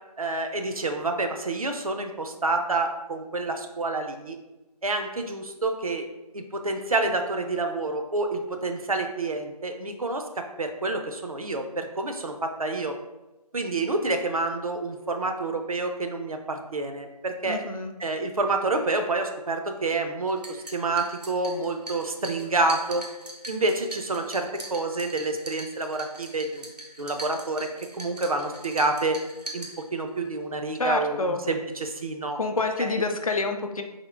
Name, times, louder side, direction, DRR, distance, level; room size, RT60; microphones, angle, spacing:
voice 1, 0.2-4.4 4.8-6.1 6.3-12.9 13.5-17.6 18.0-23.0 23.5-26.7 27.0-27.7 28.0-29.2 29.5-32.4 32.8-32.9, right 2 dB, 60° right, 5 dB, 0.6 m, -28 dB
voice 2, 17.4-17.9 30.8-31.4 32.4-33.8, left 3 dB, 60° left, 5 dB, 0.5 m, -27 dB
sound 1, 20.3-30.3, right 2 dB, 80° right, 0.9 m, -42 dB
3.6 x 3.0 x 3.6 m, 1.0 s
figure-of-eight pair, 175°, 21 cm